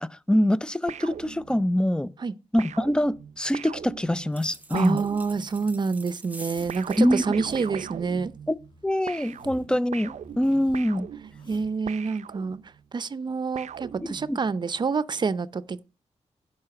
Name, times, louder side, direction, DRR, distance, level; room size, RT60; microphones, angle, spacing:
voice 1, 0.0-2.1 2.5-5.0 7.0-7.2 8.5-11.1 14.0-14.4, equal, 5° left, 0.5 m, -24 dB
sound 1, 0.9-1.9 2.6-5.7 6.7-8.8 9.1-12.8 13.5-14.5, right 9 dB, 85° right, 0.6 m, -40 dB
sound 2, 4.3-7.1, right 1 dB, 15° right, 1.2 m, -45 dB
voice 2, 4.7-8.3 11.5-12.6 12.9-15.8, right 4 dB, 40° right, 0.7 m, -27 dB
Zipper (clothing), 6.3-6.8 7.2-7.8 8.6-9.7 10.0-11.8, left 3 dB, 40° left, 3.6 m, -50 dB
10.5 x 5.5 x 7.8 m
wide cardioid pair, 135°, 12 cm